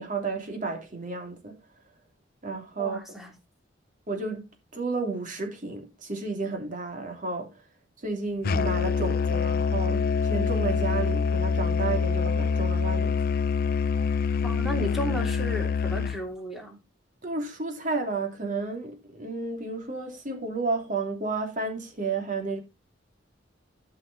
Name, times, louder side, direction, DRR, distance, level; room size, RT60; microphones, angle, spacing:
voice 1, 0.0-1.5 2.4-3.0 4.1-7.6 8.0-13.2 17.2-22.6, right 3 dB, 45° right, 2.8 m, -32 dB
voice 2, 2.8-3.3 14.4-16.8, equal, ahead, 2.9 m, -33 dB
Musical instrument, 8.4-16.2, left 5 dB, 50° left, 0.5 m, -25 dB
13.0 x 5.8 x 4.0 m
head